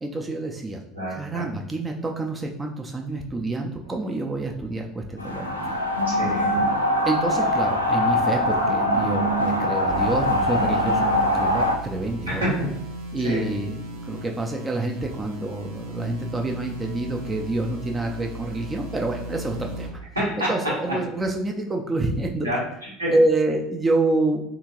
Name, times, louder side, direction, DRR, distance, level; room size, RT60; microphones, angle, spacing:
voice 1, 0.0-0.8 1.1-5.6 7.0-12.4 13.1-20.0 20.4-22.5 23.1-24.4, right 2 dB, 20° right, 2 dB, 0.4 m, -27 dB
voice 2, 0.9-1.4 6.1-6.6 12.3-12.5 13.2-13.4 20.1-20.5 22.4-23.1, equal, 85° right, -7 dB, 1.3 m, -28 dB
sound 1, 5.2-11.7, left 1 dB, 90° left, 0.4 m, -22 dB
sound 2, 9.9-19.9, right 1 dB, 60° right, 0.7 m, -37 dB
3.6 x 2.5 x 2.9 m, 0.79 s
figure-of-eight pair, 70°, 0 cm